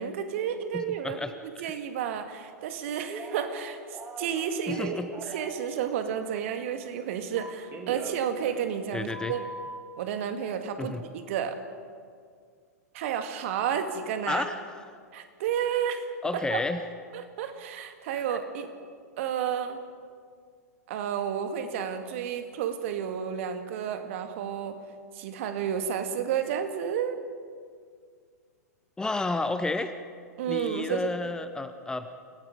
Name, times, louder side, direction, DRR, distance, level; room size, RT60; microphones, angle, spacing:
voice 1, 0.0-1.2 1.4-5.0 5.3-9.4 10.0-11.6 12.9-14.4 15.1-16.1 16.5-16.6 17.1-18.7 19.2-19.8 20.9-24.8 25.1-27.2 30.4-31.1, right 8 dB, 50° right, 7 dB, 2.0 m, -31 dB
voice 2, 0.7-1.7 4.7-5.4 8.9-9.3 10.8-11.0 14.3-14.6 16.2-16.8 18.3-18.4 29.0-29.9 30.5-32.1, left 3 dB, 10° left, 10 dB, 0.8 m, -31 dB
Telephone, 3.1-3.6 3.9-5.7 7.4-8.8 9.1-9.7, right 3 dB, 25° right, 3.0 m, -41 dB
28.5 x 17.5 x 5.2 m, 2.1 s
figure-of-eight pair, 100°, 9 cm